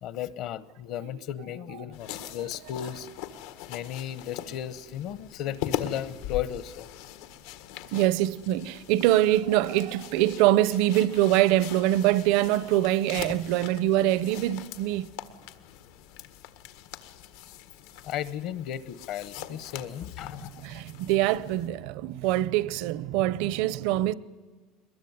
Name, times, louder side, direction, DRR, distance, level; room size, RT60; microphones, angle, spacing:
voice 1, 0.0-3.1 3.7-6.9 18.0-20.6, left 11 dB, 50° left, 0.9 m, -35 dB
sound 1, 1.9-21.7, left 11 dB, 90° left, 1.6 m, -41 dB
voice 2, 7.9-15.1 20.6-24.1, right 14 dB, 65° right, 0.7 m, -24 dB
23.0 x 21.5 x 9.5 m
cardioid pair, 170°, 0 cm